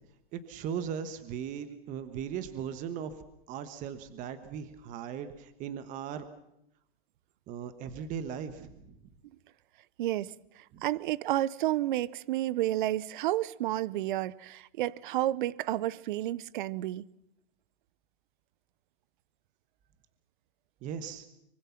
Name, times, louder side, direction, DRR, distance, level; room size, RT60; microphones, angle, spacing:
voice 1, 0.3-3.1 3.5-6.2 7.5-9.0 10.7-10.8 20.8-21.3, right 8 dB, 25° right, 1.3 m, -38 dB
voice 2, 10.0-10.3 10.8-17.0, right 14 dB, 55° right, 0.8 m, -31 dB
24.5 x 24.0 x 5.9 m
supercardioid pair, 155°, 30 cm